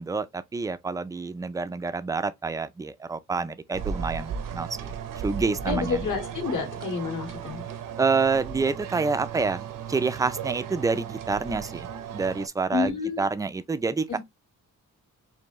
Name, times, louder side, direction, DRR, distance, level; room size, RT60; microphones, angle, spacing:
voice 1, 0.0-4.9 5.2-6.0 8.0-14.2, right 4 dB, 10° right, 0.3 m, -28 dB
sound 1, 3.7-12.5, right 7 dB, 75° right, 0.7 m, -36 dB
voice 2, 5.7-7.6 12.7-13.2 14.1-14.2, left 5 dB, 65° left, 2.1 m, -29 dB
4.4 x 2.7 x 3.0 m
cardioid pair, 110°, 33 cm